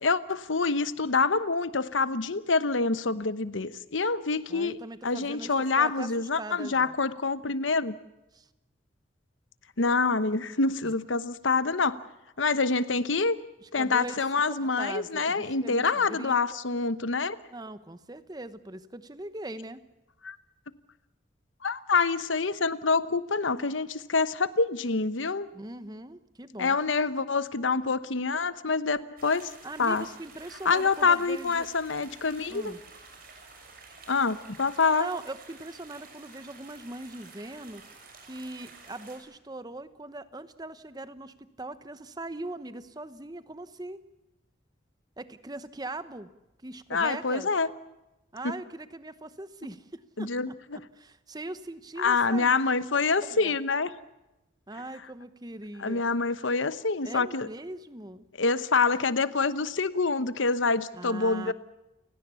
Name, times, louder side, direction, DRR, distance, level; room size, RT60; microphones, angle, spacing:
voice 1, 0.0-4.8 5.0-7.9 9.8-12.0 12.4-13.4 13.7-17.4 20.2-20.4 21.6-25.5 26.6-29.5 29.8-30.0 30.6-32.7 34.1-35.1 46.9-47.7 50.2-50.8 52.0-53.9 55.8-57.5 58.4-61.5, left 4 dB, 85° left, 14 dB, 1.0 m, -26 dB
voice 2, 4.5-6.9 8.3-8.5 10.8-10.9 13.6-16.6 17.5-19.8 25.5-26.8 29.6-31.7 32.5-32.8 35.0-37.8 38.2-44.0 45.2-46.3 46.6-47.5 48.3-52.6 53.1-53.6 54.7-56.0 57.0-58.3 60.9-61.5, right 2 dB, 20° right, 12 dB, 1.0 m, -41 dB
sound 1, 29.2-39.2, right 4 dB, 50° right, 6.2 m, -51 dB
30.0 x 17.5 x 7.0 m, 0.96 s
head